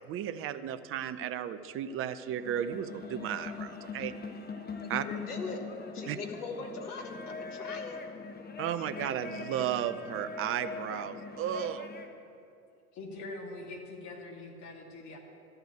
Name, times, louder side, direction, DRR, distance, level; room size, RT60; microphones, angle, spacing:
voice 1, 0.0-4.1 4.9-5.0 6.1-6.2 8.6-11.9, right 10 dB, 30° right, 12 dB, 0.5 m, -34 dB
sound 1, 2.3-12.1, left 4 dB, 20° left, 1.2 m, -42 dB
voice 2, 4.8-5.6 5.9-8.0, left 3 dB, 80° left, 4 dB, 1.6 m, -40 dB
voice 3, 12.9-15.2, left 2 dB, 40° left, 0 dB, 2.1 m, -43 dB
13.0 x 5.6 x 9.2 m, 2.6 s
figure-of-eight pair, 80°, 45 cm